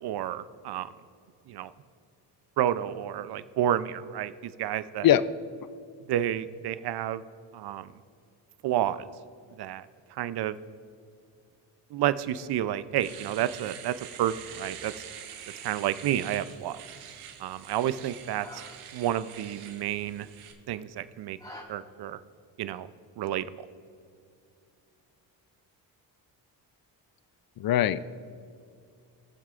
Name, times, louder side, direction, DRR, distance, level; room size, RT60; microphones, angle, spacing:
voice 1, 0.0-0.9 1.5-1.7 2.6-5.1 6.1-7.2 7.5-7.9 8.6-9.1 9.6-9.9 10.1-10.6 11.9-14.9 15.6-16.8 17.4-18.6 18.9-20.3 20.7-21.4 21.7-22.2 22.6-22.9 23.2-23.5, right 11 dB, 55° right, 14 dB, 0.6 m, -30 dB
Domestic sounds home sounds, 12.3-12.4 12.8-20.5, right 9 dB, 85° right, 1.0 m, -45 dB
sound 1, 15.5-21.6, left 1 dB, 10° left, 1.9 m, -52 dB
voice 2, 27.6-28.0, left 11 dB, 50° left, 16 dB, 0.5 m, -21 dB
19.5 x 7.3 x 2.5 m, 2.4 s
supercardioid pair, 65°, 46 cm